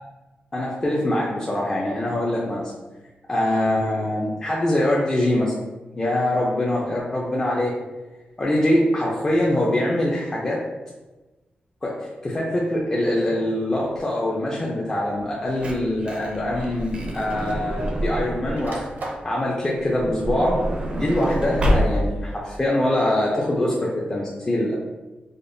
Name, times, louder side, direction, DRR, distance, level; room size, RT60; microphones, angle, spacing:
voice 1, 0.5-2.7 3.3-5.5 5.9-7.7 8.4-10.6 11.8-11.9 12.2-18.9 19.2-20.6 20.9-24.7, left 1 dB, 20° left, -5 dB, 0.5 m, -23 dB
sound 1, 13.7-14.0 15.0-15.1 16.5-16.6 16.9-18.0 18.3-19.3, right 2 dB, 70° right, 0.7 m, -37 dB
Truck / Door, 15.2-18.7 19.8-22.3 23.0-23.1 23.3-23.4, equal, 35° right, 0.5 m, -26 dB
5.0 x 2.2 x 2.6 m, 1.1 s
wide cardioid pair, 175°, 3 cm